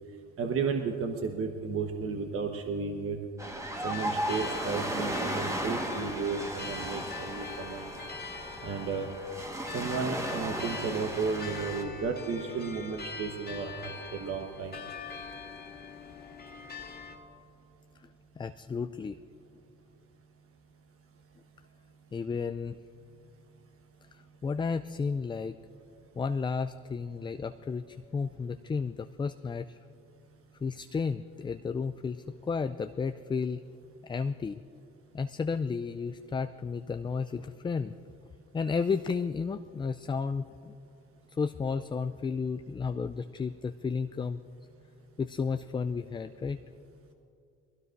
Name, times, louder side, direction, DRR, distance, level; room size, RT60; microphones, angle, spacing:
voice 1, 0.4-3.2 3.8-7.9 8.6-9.1 9.7-14.8, right 5 dB, 50° right, 4 dB, 1.1 m, -33 dB
Ocean, 3.4-11.8, right 1 dB, 10° right, 1.4 m, -36 dB
sound 1, 3.7-17.2, left 5 dB, 30° left, 2.1 m, -43 dB
voice 2, 18.4-19.2 22.1-22.7 24.1-25.6 26.2-29.8 30.6-33.6 34.0-34.6 35.1-37.9 38.5-40.7 41.4-44.4 45.2-46.6, left 5 dB, 15° left, 10 dB, 0.3 m, -32 dB
21.5 x 16.5 x 2.6 m, 2.5 s
supercardioid pair, 70°, 30 cm